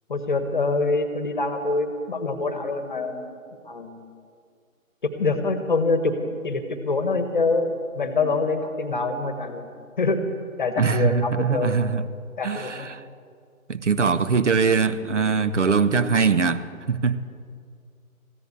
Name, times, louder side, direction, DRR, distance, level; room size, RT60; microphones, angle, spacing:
voice 1, 0.1-3.4 3.7-4.0 5.2-6.1 6.4-9.7 10.0-10.2 10.6-11.7 12.4-12.9, left 3 dB, 35° left, 1.2 m, -25 dB
voice 2, 10.8-12.0 12.4-13.0 13.7-17.2, right 5 dB, 55° right, 0.8 m, -22 dB
15.0 x 10.5 x 8.1 m
figure-of-eight pair, 150°, 43 cm